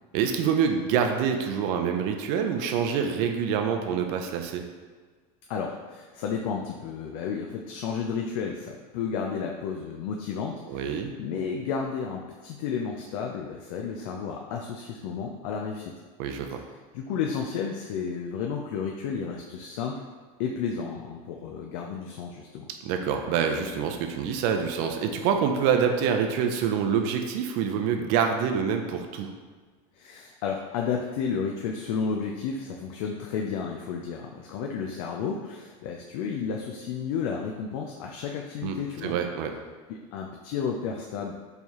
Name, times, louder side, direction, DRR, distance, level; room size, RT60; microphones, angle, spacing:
voice 1, 0.1-4.6 10.7-11.1 16.2-16.6 22.8-29.3 38.6-39.5, right 7 dB, 55° right, 5 dB, 0.5 m, -26 dB
voice 2, 5.5-15.9 16.9-20.0 20.4-22.6 30.0-39.2 39.9-41.4, left 6 dB, 75° left, 1 dB, 0.4 m, -32 dB
4.4 x 3.3 x 2.9 m, 1.5 s
cardioid pair, 160°, 17 cm